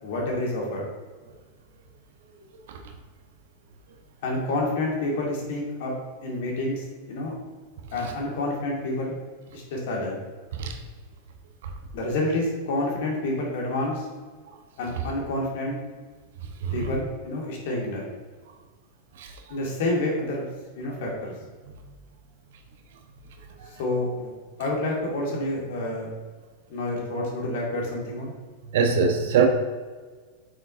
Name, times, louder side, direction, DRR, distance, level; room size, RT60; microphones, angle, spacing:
voice 1, 0.0-0.9 4.2-5.9 6.2-7.3 7.9-9.2 9.5-10.2 11.9-14.1 14.8-15.8 16.7-18.0 19.5-20.5 20.8-21.3 23.8-24.3 24.6-26.1 26.7-28.3, left 2 dB, 55° left, -2 dB, 2.1 m, -28 dB
voice 2, 28.7-29.5, right 6 dB, 55° right, 4 dB, 0.9 m, -22 dB
7.8 x 6.4 x 2.7 m, 1.4 s
figure-of-eight pair, 90°, 0 cm